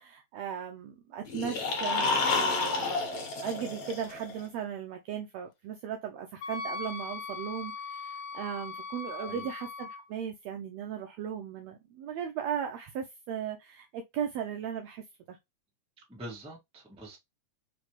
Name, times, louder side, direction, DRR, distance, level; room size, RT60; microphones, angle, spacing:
voice 1, 0.0-15.4, right 8 dB, 80° right, 1.5 m, -37 dB
sound 1, 1.3-4.4, left 4 dB, 55° left, 2.2 m, -30 dB
Wind instrument woodwind instrument, 6.4-10.0, left 5 dB, 85° left, 2.2 m, -39 dB
voice 2, 9.1-9.5 16.1-17.2, right 1 dB, 5° right, 0.9 m, -45 dB
4.9 x 3.1 x 3.1 m
omnidirectional pair, 3.5 m